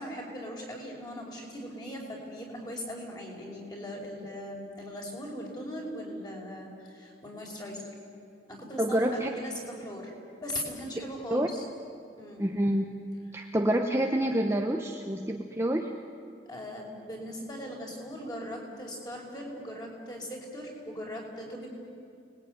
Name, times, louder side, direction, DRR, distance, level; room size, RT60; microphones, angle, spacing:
voice 1, 0.0-7.8 8.5-10.1 10.4-11.6 12.1-12.5 16.5-21.7, equal, 20° left, -1 dB, 5.5 m, -39 dB
voice 2, 8.8-9.3 11.3-11.5 12.4-12.9 13.3-15.9, right 1 dB, 15° right, 2 dB, 1.1 m, -27 dB
30.0 x 20.5 x 9.5 m, 2.4 s
head